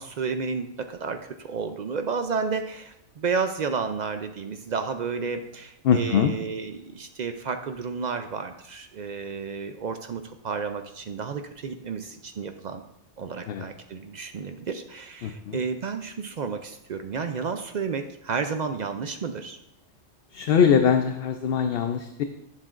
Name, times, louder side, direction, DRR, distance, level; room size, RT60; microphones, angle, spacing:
voice 1, 0.0-12.8 13.2-19.6, right 5 dB, 60° right, 7 dB, 0.5 m, -31 dB
voice 2, 5.8-6.3 13.5-13.6 15.2-15.6 20.3-22.2, left 7 dB, 65° left, 7 dB, 0.7 m, -22 dB
11.0 x 7.4 x 2.5 m, 0.80 s
omnidirectional pair, 1.2 m